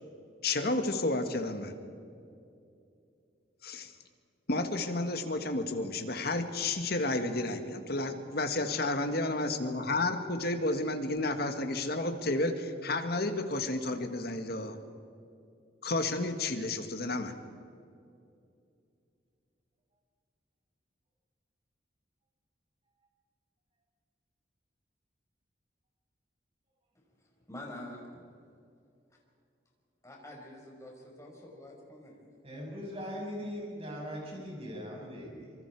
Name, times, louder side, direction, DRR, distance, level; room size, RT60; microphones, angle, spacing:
voice 1, 0.4-1.7 3.6-3.9 4.5-14.8 15.8-17.3, left 2 dB, 60° left, 7 dB, 1.9 m, -31 dB
voice 2, 27.5-28.2 30.0-32.3, left 1 dB, 15° left, -1 dB, 5.2 m, -46 dB
voice 3, 32.4-35.5, equal, 35° right, -2 dB, 6.6 m, -40 dB
26.5 x 24.5 x 4.9 m, 2.6 s
head